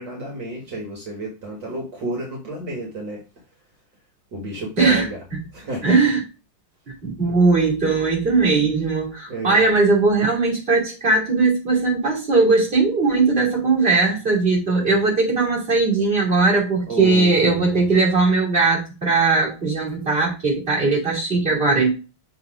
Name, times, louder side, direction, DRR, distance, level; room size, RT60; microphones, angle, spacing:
voice 1, 0.0-3.2 4.3-5.2 5.5-6.0 9.3-9.7 16.9-17.9, right 2 dB, 60° right, 0 dB, 2.2 m, -30 dB
voice 2, 5.8-6.2 7.0-21.9, right 3 dB, 25° right, -4 dB, 2.9 m, -19 dB
7.0 x 3.8 x 5.0 m, 0.31 s
omnidirectional pair, 2.4 m